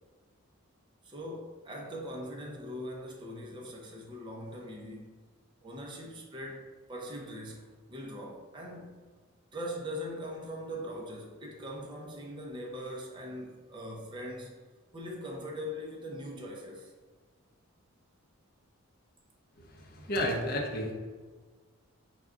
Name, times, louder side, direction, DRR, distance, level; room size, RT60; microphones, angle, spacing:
voice 1, 1.0-5.1 5.6-9.1 9.5-14.5 14.9-16.9, equal, 20° right, -2 dB, 0.5 m, -41 dB
voice 2, 19.8-20.9, left 1 dB, 45° left, -1 dB, 0.7 m, -31 dB
4.9 x 2.2 x 3.6 m, 1.4 s
head